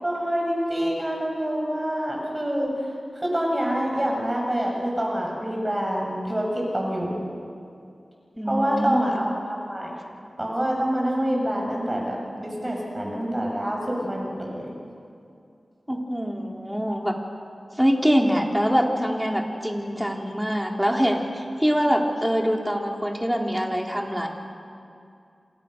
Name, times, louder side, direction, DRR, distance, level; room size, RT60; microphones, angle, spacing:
voice 1, 0.0-2.9 3.1-7.2 8.5-14.7, equal, 20° right, -1 dB, 7.3 m, -26 dB
voice 2, 8.4-9.3 15.9-17.1 17.8-24.3, equal, 5° right, 1 dB, 3.7 m, -24 dB
30.0 x 26.5 x 6.8 m, 2.5 s
wide cardioid pair, 80°, 0 cm